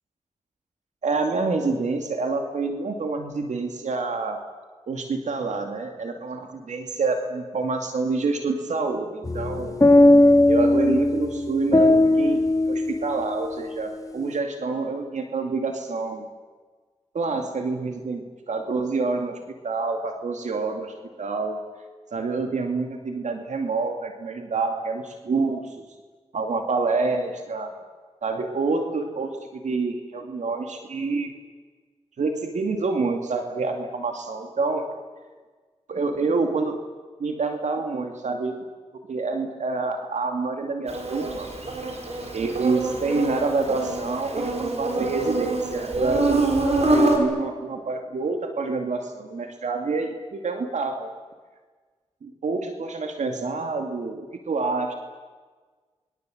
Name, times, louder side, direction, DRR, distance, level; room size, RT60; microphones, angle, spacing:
voice 1, 1.0-4.4 4.9-9.8 10.5-16.3 17.1-21.6 22.1-25.8 26.3-27.7 28.2-31.3 32.2-34.8 35.9-36.8 37.2-38.6 39.1-41.5 42.3-51.1 52.2-54.9, right 3 dB, 85° right, 4 dB, 2.5 m, -27 dB
sound 1, 9.2-13.6, left 1 dB, 30° left, 2.3 m, -18 dB
Insect, 40.9-47.2, right 2 dB, 65° right, 5.7 m, -25 dB
28.5 x 23.0 x 7.9 m, 1.4 s
cardioid pair, 50°, 12 cm